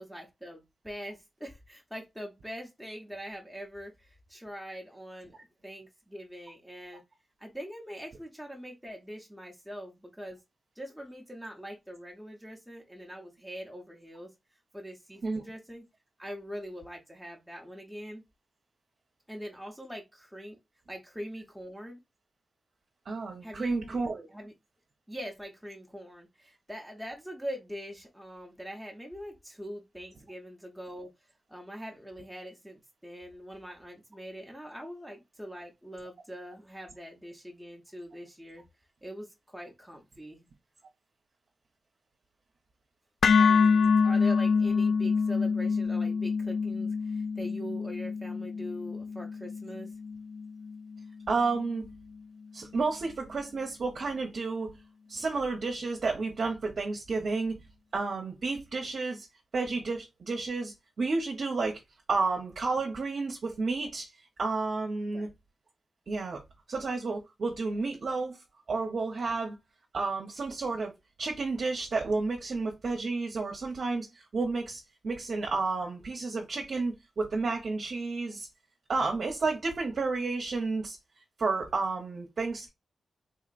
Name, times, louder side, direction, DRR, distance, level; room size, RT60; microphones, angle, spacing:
voice 1, 0.0-5.4 5.6-7.0 7.4-10.4 10.8-14.3 14.7-15.9 16.2-18.2 19.3-20.6 20.9-22.0 23.4-24.0 24.3-24.5 25.1-31.1 31.5-38.6 39.0-40.4 43.4-49.9 65.1-65.3, equal, ahead, 0.9 m, -43 dB
voice 2, 23.1-24.3 51.3-51.9 52.5-54.7 55.1-57.6 57.9-59.3 59.5-61.8 62.1-64.1 64.4-65.3 66.1-66.4 66.7-68.4 68.7-69.6 69.9-70.9 71.2-78.5 78.9-81.0 81.4-82.7, right 3 dB, 60° right, 0.8 m, -31 dB
sound 1, 43.2-51.3, left 5 dB, 60° left, 0.3 m, -26 dB
3.8 x 2.9 x 2.5 m
wide cardioid pair, 100°, 0 cm